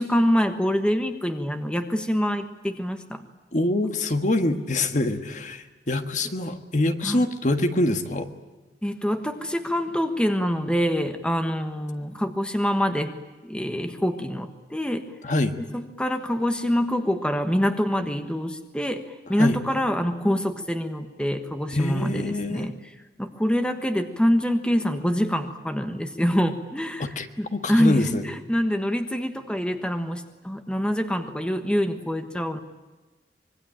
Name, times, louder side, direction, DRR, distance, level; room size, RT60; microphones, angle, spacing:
voice 1, 0.0-3.2 7.0-7.3 8.8-13.1 13.4-15.1 15.6-22.7 23.2-32.6, equal, 5° left, 7 dB, 1.3 m, -25 dB
voice 2, 3.5-8.3 15.2-15.6 19.4-19.6 21.7-22.7 27.0-27.3 27.5-28.2, left 2 dB, 45° left, 7 dB, 1.6 m, -25 dB
25.5 x 22.0 x 8.9 m, 1.2 s
head